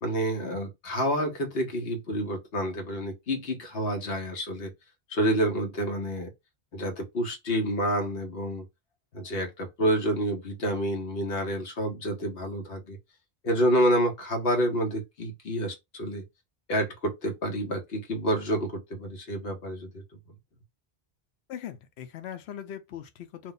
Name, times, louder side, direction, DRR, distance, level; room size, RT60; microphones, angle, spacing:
voice 1, 0.0-4.7 5.1-6.3 6.7-8.6 9.1-13.0 13.4-16.2 16.7-20.0, equal, 70° left, 1.1 m, -28 dB
voice 2, 21.5-23.5, left 10 dB, 85° left, 0.9 m, -40 dB
2.6 x 2.1 x 3.8 m
omnidirectional pair, 1.1 m